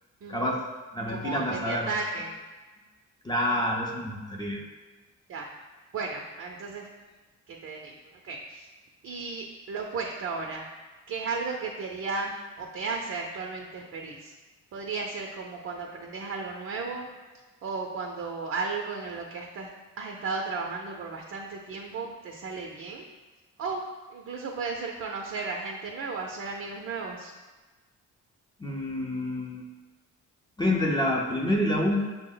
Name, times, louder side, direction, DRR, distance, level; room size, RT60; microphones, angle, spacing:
voice 1, 0.3-0.7 0.9-2.0 3.2-4.6 28.6-29.6 30.6-32.2, left 1 dB, 15° left, -2 dB, 0.6 m, -27 dB
voice 2, 1.1-2.4 5.3-5.5 5.9-6.9 7.5-7.9 8.2-8.7 9.0-10.7 11.1-14.3 14.7-17.1 17.6-19.7 20.0-23.1 23.6-23.8 24.1-27.3, right 4 dB, 50° right, 1 dB, 0.6 m, -34 dB
6.0 x 2.1 x 3.8 m, 1.3 s
cardioid pair, 80°, 32 cm